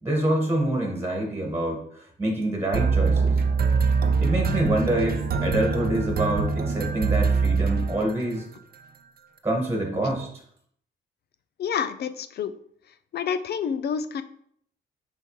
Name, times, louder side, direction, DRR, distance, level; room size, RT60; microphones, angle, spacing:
voice 1, 0.0-3.4 4.2-8.4 9.4-10.3, right 1 dB, 10° right, 0 dB, 1.6 m, -26 dB
sound 1, 2.7-8.4, right 4 dB, 50° right, 0.6 m, -23 dB
voice 2, 11.6-12.5 13.1-14.2, left 7 dB, 55° left, 12 dB, 0.5 m, -28 dB
6.7 x 4.5 x 3.2 m, 0.66 s
cardioid pair, 90°, 20 cm